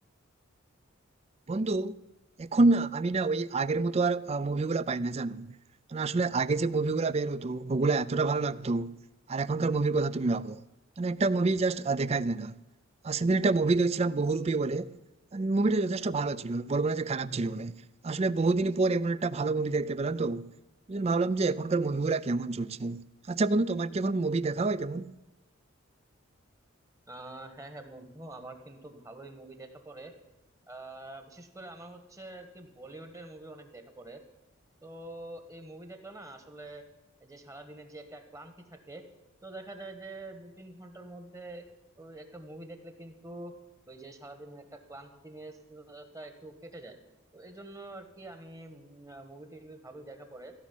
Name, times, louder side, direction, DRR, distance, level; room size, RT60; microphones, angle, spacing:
voice 1, 1.5-2.0 2.4-5.5 5.9-8.9 9.3-10.6 11.0-12.6 13.0-15.0 15.3-20.5 20.9-23.0 23.3-25.1, right 3 dB, 30° right, 0.4 m, -28 dB
voice 2, 27.1-30.1 30.7-34.2 34.8-36.8 37.2-39.0 39.4-41.6 42.0-43.5 43.9-47.0 47.3-50.5, right 2 dB, 15° right, 1.3 m, -46 dB
16.0 x 6.2 x 9.9 m
head